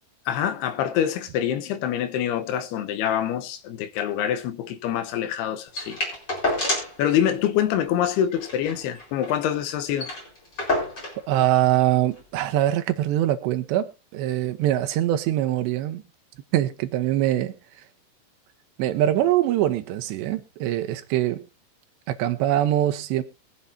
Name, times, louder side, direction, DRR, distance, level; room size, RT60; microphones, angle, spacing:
voice 1, 0.3-6.0 7.0-10.1, left 10 dB, 80° left, 2.9 m, -25 dB
sound 1, 5.7-7.0 7.4-7.5 7.7-7.9 8.3-9.4 9.7-9.8 10.0-11.2 12.1-12.2, left 1 dB, 25° left, 4.7 m, -28 dB
voice 2, 11.3-16.0 16.5-17.5 18.8-21.4 22.1-23.2, right 13 dB, 85° right, 3.2 m, -23 dB
22.0 x 7.8 x 2.7 m
omnidirectional pair, 4.9 m